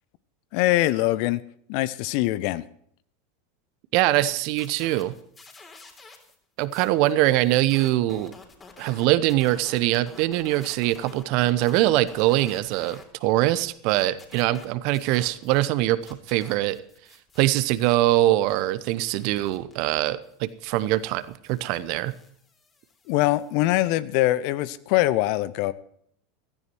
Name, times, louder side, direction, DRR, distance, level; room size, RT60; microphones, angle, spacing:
voice 1, 0.5-1.4 1.7-2.6 23.1-25.7, left 16 dB, 55° left, 0.7 m, -23 dB
voice 2, 3.9-5.1 6.6-8.3 8.8-16.8 17.4-22.1, right 15 dB, 55° right, 0.9 m, -23 dB
sound 1, 4.3-6.4 6.6-13.1 13.4-15.7 16.0-23.5, left 4 dB, 25° left, 3.6 m, -50 dB
15.5 x 14.0 x 4.6 m
figure-of-eight pair, 85°, 0 cm